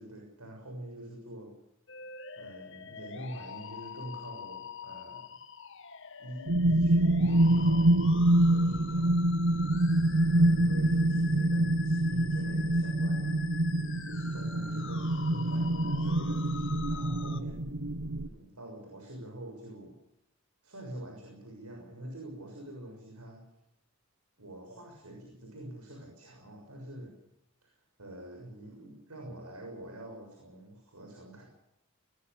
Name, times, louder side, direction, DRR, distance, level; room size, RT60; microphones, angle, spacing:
voice 1, 0.0-1.6 2.3-5.2 6.2-9.8 10.2-13.4 14.1-17.7 18.2-20.0 20.6-23.4 24.4-27.1 27.6-31.4, right 1 dB, 85° right, 2 dB, 6.7 m, -45 dB
sound 1, 1.9-17.4, left 6 dB, 55° left, 1.9 m, -45 dB
sound 2, 6.5-18.3, right 1 dB, 65° right, 1.0 m, -26 dB
22.0 x 20.0 x 6.9 m, 0.82 s
head